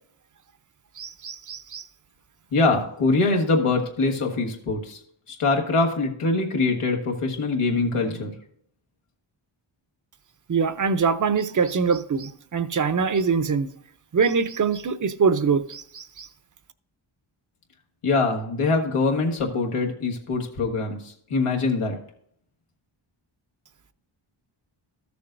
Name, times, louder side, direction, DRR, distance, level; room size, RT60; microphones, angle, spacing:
voice 1, 1.0-1.8 10.5-13.7 14.1-16.3, right 5 dB, 40° right, 0.6 m, -23 dB
voice 2, 2.5-5.0 5.3-8.3 18.0-22.0, left 3 dB, 90° left, 1.5 m, -23 dB
14.0 x 6.8 x 2.6 m
wide cardioid pair, 90°, 50 cm